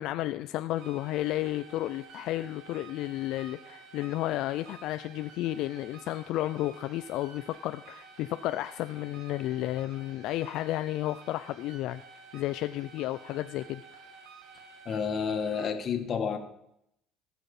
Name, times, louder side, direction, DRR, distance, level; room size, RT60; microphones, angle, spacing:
voice 1, 0.0-12.0 12.3-14.0, left 15 dB, 70° left, 11 dB, 0.3 m, -32 dB
sound 1, 0.7-15.7, right 5 dB, 65° right, 1.5 m, -51 dB
voice 2, 14.8-16.4, left 6 dB, 40° left, 6 dB, 1.6 m, -30 dB
18.5 x 6.1 x 5.4 m, 0.81 s
cardioid pair, 120°, 0 cm